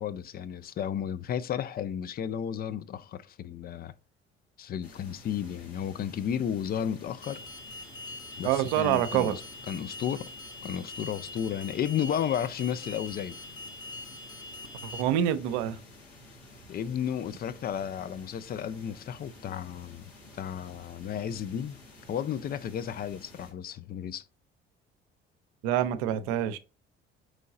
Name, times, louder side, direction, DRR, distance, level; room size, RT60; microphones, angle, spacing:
voice 1, 0.0-3.9 4.6-7.4 8.4-9.4 9.7-10.3 10.6-13.4 16.7-20.1 20.4-21.8 22.1-24.3, left 9 dB, 30° left, 0.4 m, -33 dB
sound 1, 4.8-23.5, left 1 dB, 80° left, 1.5 m, -52 dB
Alarm, 7.2-15.0, left 2 dB, 15° left, 0.9 m, -43 dB
voice 2, 8.4-9.3 14.8-15.8 25.6-26.6, right 11 dB, 60° right, 0.5 m, -26 dB
4.6 x 3.2 x 3.7 m
figure-of-eight pair, 50°, 31 cm